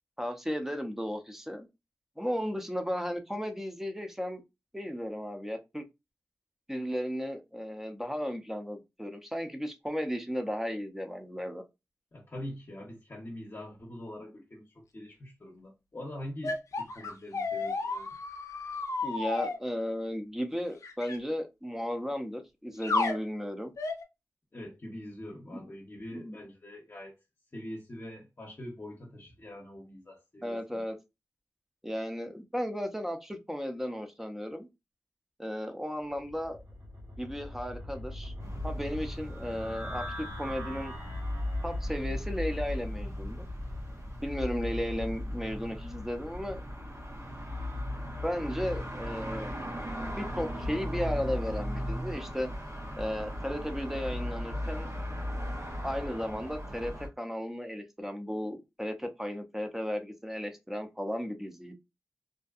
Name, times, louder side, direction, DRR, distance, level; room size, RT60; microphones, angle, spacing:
voice 1, 0.2-1.7 2.2-4.4 4.7-5.8 6.7-11.6 19.0-23.7 25.5-25.6 26.1-26.4 30.4-31.0 31.8-34.7 35.4-36.6 37.2-38.3 38.6-40.9 41.6-43.4 44.2-46.6 48.2-49.5 50.2-52.5 53.0-54.9 55.8-61.8, equal, 5° right, 0.6 m, -35 dB
voice 2, 12.1-18.2 24.5-27.2 27.5-30.8, left 1 dB, 45° left, 0.8 m, -44 dB
sound 1, 16.4-19.6 20.8-21.2 22.8-23.2 23.8-24.0, left 3 dB, 75° left, 0.5 m, -32 dB
sound 2, 36.1-48.0, equal, 60° right, 1.4 m, -45 dB
sound 3, 38.4-57.1, left 1 dB, 85° right, 0.9 m, -37 dB
2.6 x 2.1 x 2.4 m
cardioid pair, 50°, 5 cm